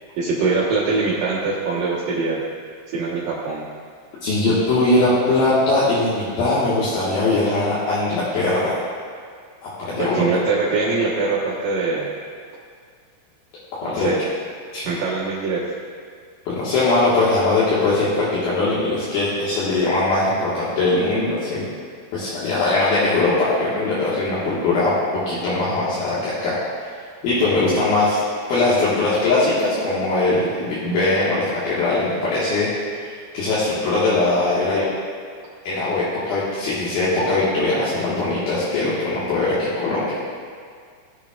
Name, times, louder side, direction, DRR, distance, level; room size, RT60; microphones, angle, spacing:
voice 1, 0.2-2.4 2.9-3.6 10.0-12.1 13.8-14.2 14.9-15.7, right 4 dB, 85° right, -9 dB, 1.9 m, -23 dB
voice 2, 4.2-8.8 9.6-10.3 13.8-14.1 14.7-14.8 16.5-21.6 22.1-25.0 25.3-26.6 27.2-28.2 28.5-32.7 33.0-34.8 35.6-40.2, left 2 dB, 60° left, -10 dB, 2.7 m, -20 dB
18.5 x 7.3 x 2.4 m, 2.1 s
omnidirectional pair, 6.0 m